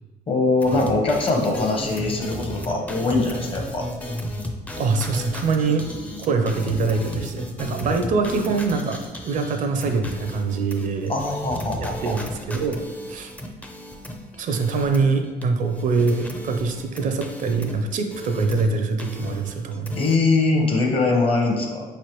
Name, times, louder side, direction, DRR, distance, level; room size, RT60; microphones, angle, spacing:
voice 1, 0.3-3.9 11.1-12.2 19.9-21.8, left 3 dB, 35° left, 1 dB, 0.8 m, -22 dB
sound 1, 0.6-15.4 15.7-18.7 19.0-20.2, left 1 dB, 10° left, 0.4 m, -34 dB
voice 2, 4.8-5.9 6.2-11.1 12.0-13.3 14.4-20.0, right 4 dB, 50° right, 6 dB, 0.4 m, -24 dB
4.6 x 3.1 x 3.0 m, 1.3 s
cardioid pair, 110°, 17 cm